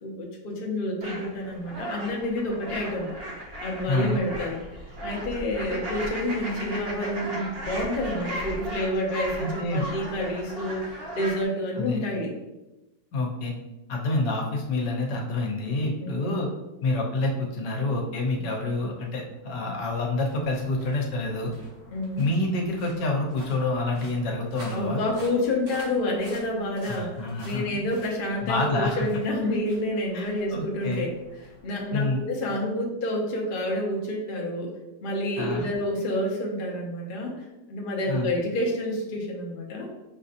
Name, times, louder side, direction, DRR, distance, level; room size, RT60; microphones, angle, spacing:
voice 1, 0.0-3.1 3.6-4.6 5.0-12.3 16.0-16.4 18.3-18.4 21.9-22.2 24.6-31.1 31.6-34.7 35.0-39.9, left 1 dB, 50° left, -2 dB, 0.6 m, -29 dB
sound 1, 1.0-11.5, equal, 55° right, 0.6 m, -36 dB
voice 2, 3.9-4.2 9.4-9.9 11.8-12.0 13.1-13.5 13.9-16.5 16.8-21.5 22.2-25.0 26.9-27.8 28.4-29.1 30.1-31.1 31.9-32.2 35.4-35.7 38.1-38.3, left 2 dB, 75° left, 0 dB, 1.4 m, -28 dB
sound 2, 19.3-32.7, equal, 80° right, 1.9 m, -50 dB
6.2 x 2.7 x 2.5 m, 1.0 s
omnidirectional pair, 1.9 m